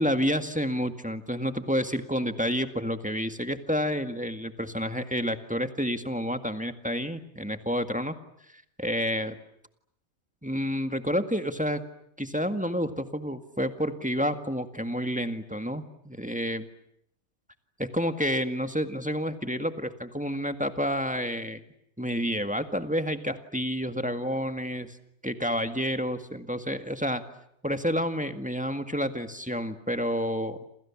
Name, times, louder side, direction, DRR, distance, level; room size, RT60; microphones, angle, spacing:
voice 1, 0.0-8.2 8.5-9.4 10.4-11.8 12.2-16.7 17.8-21.6 22.0-25.0 25.2-27.2 27.6-30.6, equal, 5° right, 8 dB, 1.8 m, -29 dB
29.0 x 28.0 x 7.3 m, 0.74 s
omnidirectional pair, 1.4 m